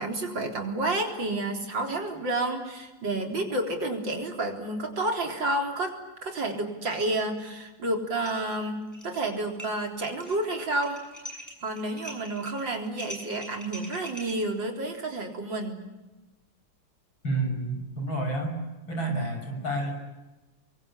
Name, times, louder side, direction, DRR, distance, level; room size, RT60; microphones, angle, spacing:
voice 1, 0.0-5.9 6.2-11.0 11.6-15.8, right 2 dB, 70° right, 3 dB, 4.6 m, -30 dB
sound 1, 8.2-8.5 8.8-9.3 9.6-14.3, equal, 10° left, 7.2 m, -42 dB
voice 2, 17.2-18.6 18.9-19.9, right 2 dB, 85° left, 4 dB, 6.8 m, -29 dB
30.0 x 23.5 x 8.4 m, 1.1 s
omnidirectional pair, 2.1 m